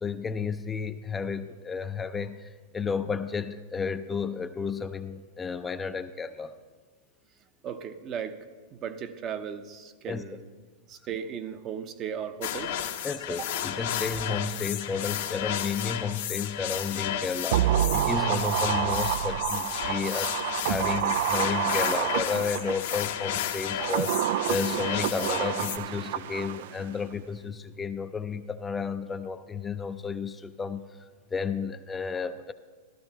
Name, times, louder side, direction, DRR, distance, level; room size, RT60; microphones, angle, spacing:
voice 1, 0.0-6.5 10.1-10.2 13.0-24.2 24.5-31.0 31.3-32.5, left 5 dB, 15° left, 9 dB, 0.5 m, -32 dB
voice 2, 7.6-8.4 8.7-10.4 10.9-12.9 13.3-13.5, right 8 dB, 35° right, 9 dB, 0.8 m, -36 dB
sound 1, 12.4-25.8, left 10 dB, 65° left, 0.9 m, -32 dB
sound 2, 17.5-23.0 23.6-26.8 27.1-27.2, right 11 dB, 65° right, 0.3 m, -28 dB
14.5 x 12.5 x 3.0 m, 1.5 s
hypercardioid pair, 115°, 0 cm